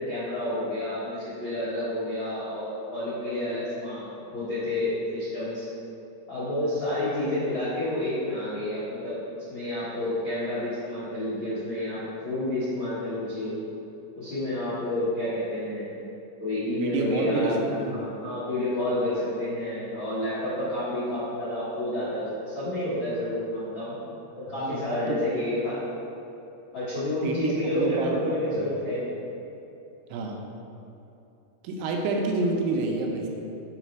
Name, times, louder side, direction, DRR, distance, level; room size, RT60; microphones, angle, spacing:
voice 1, 0.0-5.6 6.3-13.5 14.1-16.0 16.4-24.0 24.4-25.8 26.7-29.2, left 1 dB, 80° left, -12 dB, 1.1 m, -29 dB
voice 2, 16.8-18.0 24.6-25.5 27.2-28.7 30.1-30.5 31.6-33.3, right 3 dB, 80° right, 1 dB, 2.6 m, -29 dB
7.3 x 4.1 x 4.5 m, 2.8 s
omnidirectional pair, 4.7 m